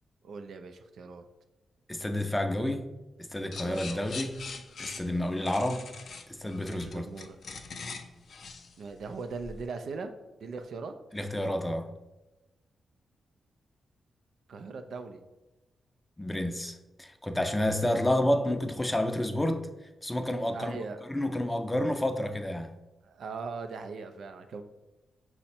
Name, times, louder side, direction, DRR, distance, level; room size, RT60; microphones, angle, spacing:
voice 1, 0.2-1.2 3.6-4.1 6.7-7.4 8.8-10.1 10.4-10.9 14.5-15.2 17.6-17.8 20.5-21.0 23.0-24.6, right 4 dB, 75° right, 0.4 m, -40 dB
voice 2, 1.9-2.9 3.2-4.4 4.8-5.8 6.3-7.1 11.1-11.9 16.2-19.7 20.0-20.8 21.1-22.7, left 1 dB, 15° left, 0.5 m, -30 dB
sound 1, 3.5-9.6, left 4 dB, 65° left, 0.5 m, -42 dB
5.5 x 2.1 x 4.2 m
cardioid pair, 65°, 0 cm